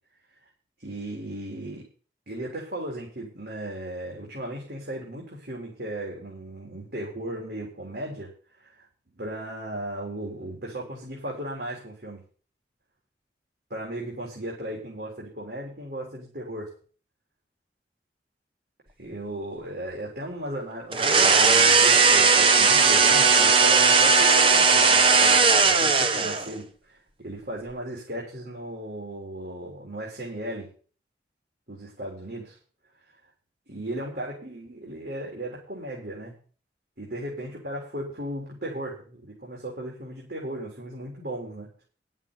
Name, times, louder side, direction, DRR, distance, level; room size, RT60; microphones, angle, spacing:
voice 1, 0.8-1.8 2.3-8.3 8.6-8.9 9.1-12.2 13.7-16.7 19.0-30.7 31.7-32.6 33.7-36.3 37.0-41.8, right 1 dB, 65° right, -3 dB, 3.9 m, -36 dB
sound 1, 20.9-26.5, right 5 dB, 30° right, 1.1 m, -18 dB
10.5 x 7.4 x 8.1 m, 0.41 s
head